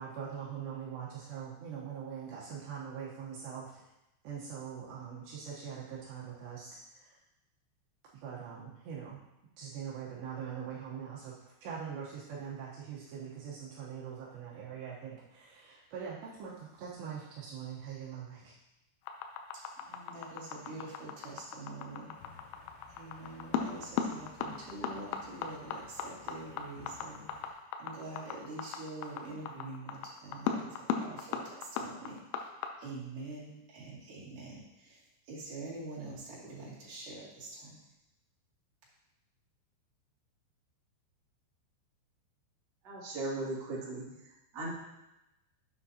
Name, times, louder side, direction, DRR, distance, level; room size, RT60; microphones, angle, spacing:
voice 1, 0.0-3.8 4.2-7.2 8.1-9.2 9.6-18.6, right 7 dB, 75° right, -6 dB, 3.1 m, -43 dB
sound 1, 19.1-32.7, left 7 dB, 85° left, 3.2 m, -36 dB
voice 2, 19.5-22.1 22.9-37.8, right 2 dB, 50° right, -8 dB, 3.6 m, -45 dB
sound 2, 22.1-27.5, left 5 dB, 70° left, 2.6 m, -57 dB
voice 3, 42.8-44.7, right 2 dB, 30° right, -8 dB, 2.1 m, -38 dB
9.9 x 7.9 x 2.8 m, 0.93 s
omnidirectional pair, 5.4 m